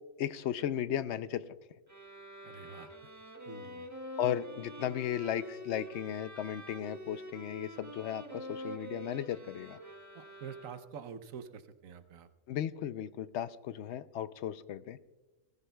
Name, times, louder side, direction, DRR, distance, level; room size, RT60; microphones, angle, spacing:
voice 1, 0.2-1.5 4.2-9.8 12.5-15.0, left 10 dB, 70° left, 14 dB, 0.8 m, -35 dB
sound 1, 1.9-11.1, equal, 15° right, 1.3 m, -46 dB
voice 2, 2.4-3.1 3.5-3.9 10.1-12.3, right 7 dB, 90° right, 11 dB, 1.2 m, -47 dB
19.5 x 15.0 x 2.3 m, 1.1 s
omnidirectional pair, 1.3 m